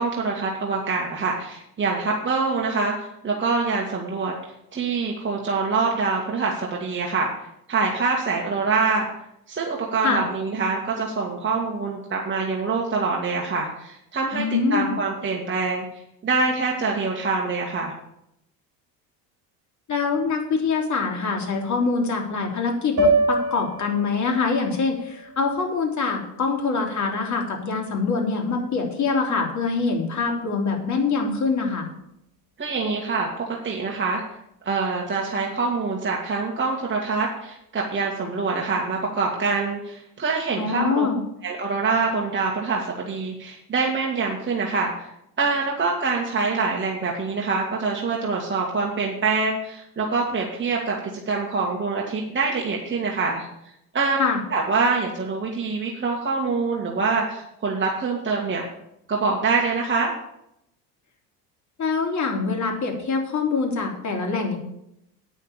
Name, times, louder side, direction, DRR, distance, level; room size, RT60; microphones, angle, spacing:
voice 1, 0.0-4.3 4.7-7.3 7.7-9.1 9.5-14.4 14.7-15.8 16.2-17.9 32.6-34.2 34.6-41.1 41.4-45.1 45.4-51.0 51.3-53.5 53.9-54.2 54.5-58.6 59.1-60.1, right 4 dB, 25° right, -1 dB, 2.0 m, -25 dB
voice 2, 14.3-14.9 19.9-31.9 40.6-41.2 54.2-54.4 61.8-64.6, left 4 dB, 35° left, 2 dB, 3.3 m, -24 dB
sound 1, 23.0-27.2, right 2 dB, 40° right, 2.7 m, -27 dB
9.0 x 6.4 x 8.4 m, 0.80 s
hypercardioid pair, 75°, 46 cm